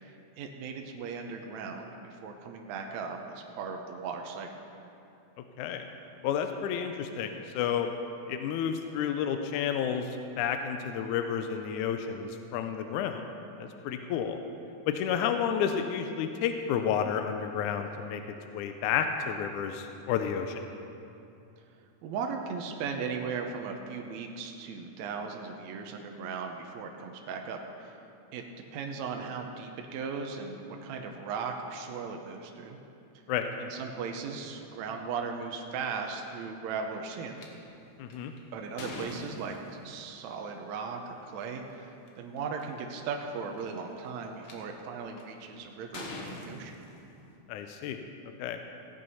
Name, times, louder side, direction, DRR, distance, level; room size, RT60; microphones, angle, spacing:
voice 1, 0.0-4.5 22.0-27.9 28.3-28.4 28.7-32.8 33.6-37.4 38.5-46.7, right 5 dB, 70° right, 2 dB, 2.0 m, -37 dB
voice 2, 6.2-7.9 8.3-10.1 10.4-13.2 13.6-14.4 14.9-18.2 18.5-20.7 33.3-33.5 38.0-38.3 47.5-48.0 48.4-48.6, left 8 dB, 80° left, 6 dB, 2.0 m, -31 dB
sound 1, 37.4-37.5 38.1-40.0 41.2-41.4 42.1-42.2 42.4-42.8 43.5-44.5 45.2-45.5 45.9-47.4, left 2 dB, 50° left, 1.6 m, -42 dB
16.0 x 8.8 x 5.5 m, 2.7 s
omnidirectional pair, 3.6 m